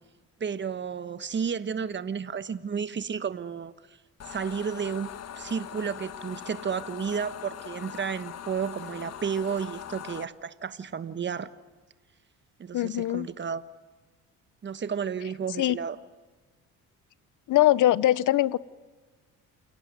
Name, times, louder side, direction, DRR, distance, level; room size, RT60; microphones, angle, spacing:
voice 1, 0.4-3.7 4.3-5.1 5.4-11.5 12.6-13.6 14.6-16.0, right 6 dB, 35° right, 1.3 m, -32 dB
sound 1, 4.2-10.2, left 9 dB, 50° left, 1.3 m, -41 dB
voice 2, 12.7-13.3 15.6-15.8 17.5-18.6, left 14 dB, 65° left, 0.9 m, -22 dB
29.0 x 18.0 x 9.3 m
cardioid pair, 105°, 33 cm